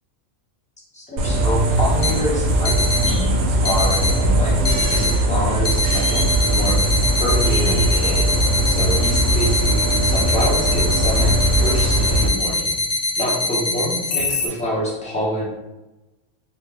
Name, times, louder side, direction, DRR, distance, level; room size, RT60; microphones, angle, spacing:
voice 1, 0.9-2.7 3.0-6.8 7.2-8.3 8.6-11.3 11.6-12.8 13.2-15.5, equal, 5° left, -6 dB, 0.5 m, -26 dB
sound 1, 1.2-12.3, right 1 dB, 75° right, 0.9 m, -20 dB
sound 2, 2.0-2.1 2.7-3.1 3.7-4.1 4.7-5.1 5.7-14.5, left 2 dB, 60° left, 0.7 m, -23 dB
2.9 x 2.3 x 3.6 m, 1.0 s
omnidirectional pair, 1.5 m